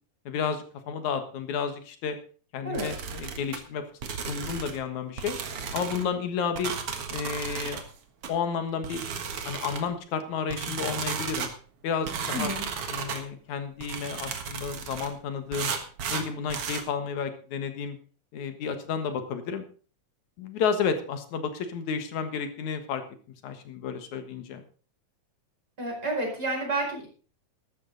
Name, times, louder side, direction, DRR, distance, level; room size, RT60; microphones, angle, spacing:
voice 1, 0.3-2.2 2.5-5.4 5.7-6.7 7.1-7.8 8.3-9.1 9.4-11.5 11.8-12.5 12.9-15.7 16.1-18.0 18.3-19.6 20.4-23.0 23.4-24.6, left 6 dB, 60° left, 8 dB, 2.7 m, -31 dB
sound 1, 2.7-3.6 4.0-4.8 5.2-6.0 6.6-7.8 8.2-8.3 8.8-9.9 10.5-11.5 12.1-13.2 13.8-15.1 15.5-16.8, right 6 dB, 50° right, 2.0 m, -34 dB
voice 2, 12.3-12.7 25.8-27.1, right 2 dB, 30° right, 0 dB, 5.3 m, -30 dB
14.0 x 12.0 x 4.0 m, 0.41 s
omnidirectional pair, 4.0 m